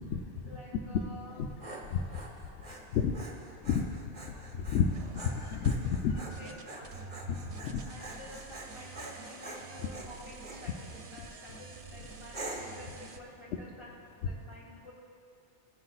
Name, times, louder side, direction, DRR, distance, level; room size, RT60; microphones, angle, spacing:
voice 1, 0.4-1.4 6.4-7.0 7.8-13.9 14.2-14.9, left 1 dB, 25° left, -6 dB, 3.0 m, -50 dB
Dog, 1.2-10.7 11.2-11.6 12.3-12.8, right 2 dB, 40° right, 1.2 m, -46 dB
voice 2, 4.5-4.9 5.2-6.4 7.6-7.7, left 7 dB, 85° left, 3 dB, 0.9 m, -29 dB
sound 1, 4.9-13.2, right 4 dB, 75° right, 1.0 m, -48 dB
16.5 x 9.6 x 2.4 m, 2.3 s
omnidirectional pair, 1.2 m